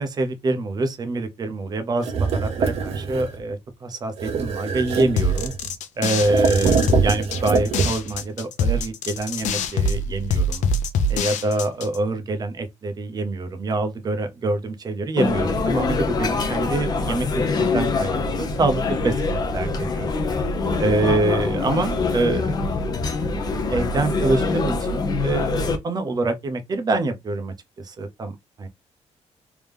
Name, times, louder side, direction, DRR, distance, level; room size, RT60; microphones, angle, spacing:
voice 1, 0.0-5.5 6.0-10.6 11.1-17.3 17.5-20.2 20.8-22.8 23.7-28.7, right 2 dB, 35° right, 0.8 m, -25 dB
sound 1, 2.0-3.4 4.2-5.7 6.2-8.2, right 5 dB, 60° right, 1.0 m, -24 dB
sound 2, 5.2-12.0, left 2 dB, 85° left, 0.7 m, -24 dB
sound 3, 15.2-25.8, left 3 dB, 35° left, 0.7 m, -24 dB
3.4 x 3.0 x 3.4 m
cardioid pair, 165°, 12 cm